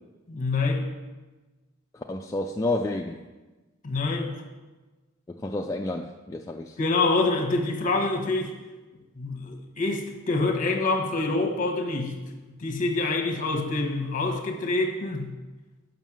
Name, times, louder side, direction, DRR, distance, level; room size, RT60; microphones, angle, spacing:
voice 1, 0.3-0.8 3.8-4.3 6.8-8.5 9.2-12.2 12.6-15.3, left 3 dB, 40° left, 3 dB, 1.1 m, -26 dB
voice 2, 1.9-3.2 5.3-6.8, left 2 dB, 15° left, 1 dB, 0.3 m, -30 dB
7.3 x 5.4 x 6.1 m, 1.2 s
head